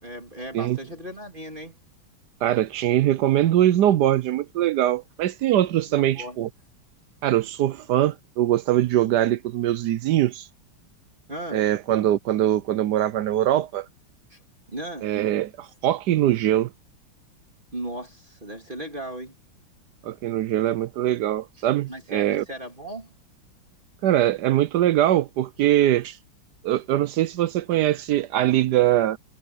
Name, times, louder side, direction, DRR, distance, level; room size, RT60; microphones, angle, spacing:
voice 1, 0.0-1.7 5.9-6.4 11.3-11.6 14.3-14.4 14.7-15.1 17.7-19.3 21.9-23.1, right 1 dB, 25° right, 3.0 m, -36 dB
voice 2, 2.4-6.5 7.2-10.5 11.5-13.9 15.0-16.7 20.0-22.4 24.0-26.2 26.6-29.2, right 12 dB, 75° right, 1.0 m, -22 dB
omnidirectional pair, 2.3 m